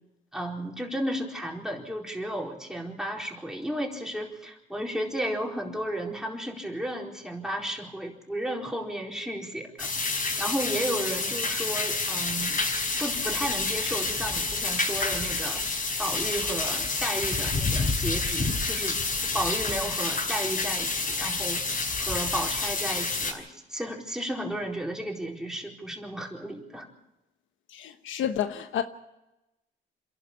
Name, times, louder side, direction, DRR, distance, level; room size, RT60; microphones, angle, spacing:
voice 1, 0.3-9.9 10.4-12.6 13.0-15.6 16.0-19.0 19.3-21.6 22.0-26.9, right 1 dB, 5° right, 4.4 m, -33 dB
sound 1, 9.8-23.3, left 3 dB, 45° left, 5.3 m, -28 dB
voice 2, 27.7-28.8, left 9 dB, 80° left, 1.2 m, -30 dB
27.0 x 11.5 x 8.6 m
cardioid pair, 90°, 20 cm